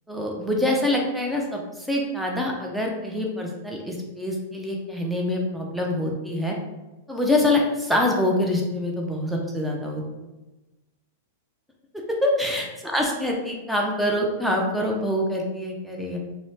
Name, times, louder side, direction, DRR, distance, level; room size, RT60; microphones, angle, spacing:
voice 1, 0.1-6.6 7.1-10.0 12.1-12.7 12.9-16.2, left 1 dB, ahead, -1 dB, 0.6 m, -25 dB
2.5 x 2.1 x 3.2 m, 1.1 s
hypercardioid pair, 115°, 0 cm